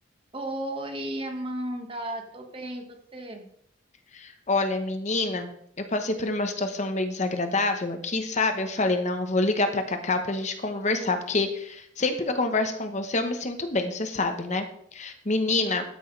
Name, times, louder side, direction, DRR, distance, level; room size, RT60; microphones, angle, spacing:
voice 1, 0.3-3.5, right 1 dB, 30° right, 4 dB, 1.5 m, -34 dB
voice 2, 4.1-5.5 5.8-14.7 14.9-15.8, left 2 dB, 35° left, 7 dB, 0.9 m, -27 dB
12.5 x 9.8 x 3.2 m, 0.68 s
head